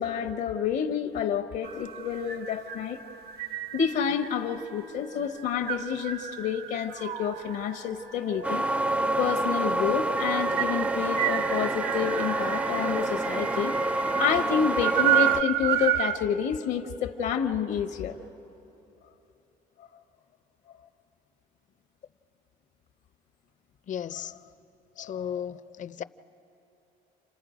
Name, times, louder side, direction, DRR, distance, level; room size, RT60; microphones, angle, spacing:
voice 1, 0.0-3.0 3.7-8.6 9.2-18.2 19.8-19.9 25.0-25.1, left 8 dB, 80° left, 1.2 m, -29 dB
sound 1, 1.6-16.2, right 12 dB, 70° right, 0.9 m, -32 dB
sound 2, 8.4-15.4, right 2 dB, 10° right, 0.4 m, -28 dB
voice 2, 23.9-24.3 25.0-26.0, left 9 dB, 50° left, 0.6 m, -35 dB
29.5 x 26.0 x 5.1 m
cardioid pair, 110°, 17 cm